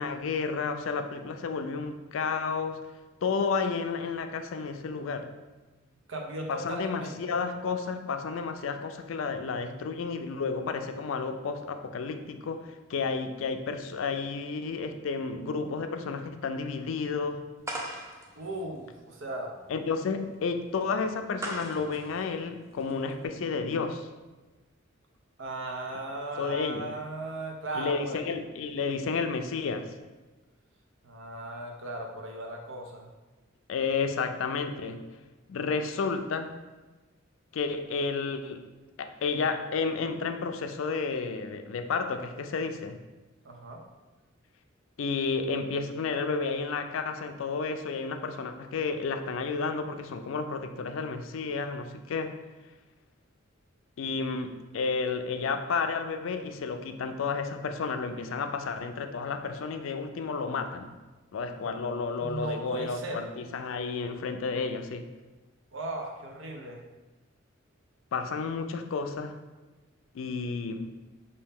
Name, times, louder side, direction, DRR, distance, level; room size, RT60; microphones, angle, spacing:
voice 1, 0.0-2.9 3.2-5.3 6.5-17.5 19.7-24.1 26.4-26.9 27.7-29.9 33.7-35.0 35.5-36.5 37.5-38.7 39.0-43.0 45.0-52.4 54.0-61.0 61.3-65.1 68.1-69.4 70.1-71.0, left 4 dB, 75° left, 0.4 m, -31 dB
voice 2, 6.1-7.3 18.4-19.5 25.4-28.2 31.0-33.1 43.4-43.8 61.6-61.8 62.2-63.3 65.7-66.8, right 1 dB, 65° right, 0.7 m, -37 dB
sound 1, 17.6-23.3, right 1 dB, 15° right, 0.5 m, -41 dB
5.3 x 2.7 x 3.5 m
head